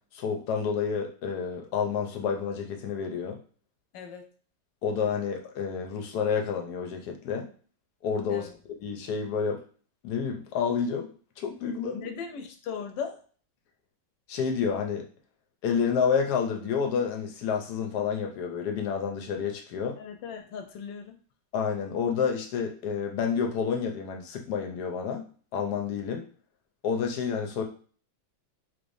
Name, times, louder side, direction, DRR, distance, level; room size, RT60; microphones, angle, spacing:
voice 1, 0.1-3.4 4.8-7.5 8.0-8.5 8.8-9.6 10.0-11.1 11.4-12.1 14.3-15.0 15.6-20.0 21.5-25.2 25.5-26.2 26.8-27.6, left 6 dB, 70° left, 3 dB, 1.2 m, -29 dB
voice 2, 3.9-4.2 8.3-8.5 11.9-13.2 20.0-21.2, left 6 dB, 85° left, 5 dB, 1.3 m, -38 dB
3.7 x 3.3 x 2.6 m, 0.42 s
omnidirectional pair, 1.9 m